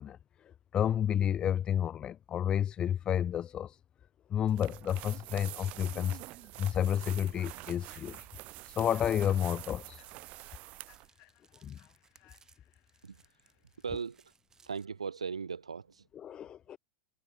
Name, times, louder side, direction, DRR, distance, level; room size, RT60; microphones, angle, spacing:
voice 1, 0.0-3.8 4.3-8.2 8.6-10.0 11.6-11.8 16.2-16.8, left 9 dB, 30° left, 0.4 m, -31 dB
sound 1, 4.5-11.1, right 20 dB, 45° right, 0.6 m, -46 dB
Human voice / Train, 5.8-5.9 6.3-13.9, left 22 dB, 45° left, 6.0 m, -67 dB
sound 2, 9.2-14.8, right 5 dB, 20° right, 7.5 m, -67 dB
voice 2, 13.8-14.3 14.7-16.1, right 5 dB, 85° right, 1.7 m, -38 dB
hypercardioid pair, 95°, 3 cm